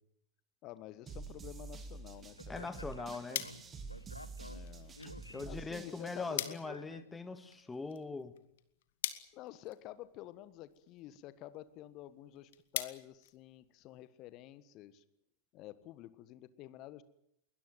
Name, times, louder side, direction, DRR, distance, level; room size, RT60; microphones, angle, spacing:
voice 1, 0.6-2.8 4.4-4.9 5.5-6.8 9.3-15.0 15.5-17.0, left 14 dB, 40° left, 15 dB, 1.4 m, -50 dB
sound 1, 1.1-6.4, right 4 dB, 20° right, 2.9 m, -48 dB
Speech, 2.4-7.4, left 2 dB, 85° left, 1.0 m, -52 dB
voice 2, 2.5-3.5 5.0-8.3, left 3 dB, 10° left, 11 dB, 1.9 m, -42 dB
sound 2, 3.3-14.1, left 12 dB, 55° left, 1.8 m, -46 dB
22.0 x 20.5 x 9.3 m, 0.74 s
figure-of-eight pair, 90°, 0 cm